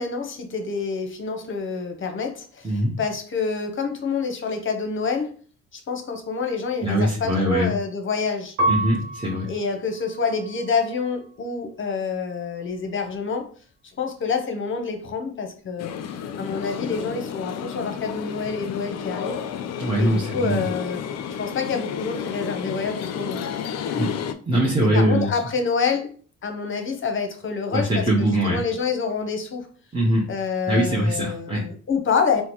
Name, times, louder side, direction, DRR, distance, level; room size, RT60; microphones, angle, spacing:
voice 1, 0.0-5.3 5.7-8.5 9.5-13.5 14.0-15.9 16.4-19.4 20.0-21.0 21.4-23.4 24.8-26.1 26.4-29.7 30.3-32.4, left 5 dB, 40° left, 5 dB, 0.8 m, -27 dB
voice 2, 6.8-7.7 8.7-9.5 19.8-20.7 23.9-25.3 27.7-28.6 29.9-30.3 30.7-31.7, right 1 dB, 15° right, -5 dB, 0.8 m, -22 dB
Piano, 8.6-11.3 12.0-12.7, right 2 dB, 50° right, 1.0 m, -30 dB
sound 1, 15.8-24.3, left 8 dB, 60° left, 0.4 m, -31 dB
3.7 x 2.1 x 3.0 m, 0.42 s
cardioid pair, 90°, 30 cm